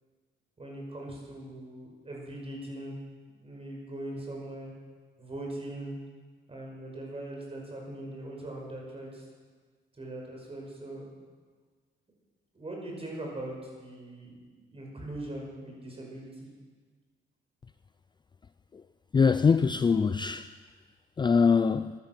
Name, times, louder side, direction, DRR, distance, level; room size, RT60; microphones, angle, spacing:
voice 1, 0.6-2.9 3.4-4.7 5.2-6.0 6.5-9.2 10.0-11.1 12.5-14.4 14.7-16.5, right 1 dB, 30° right, 5.9 m, -40 dB
voice 2, 19.1-20.5 21.2-21.9, left 5 dB, 20° left, 0.4 m, -23 dB
15.5 x 11.5 x 6.0 m
cardioid pair, 85°, 20 cm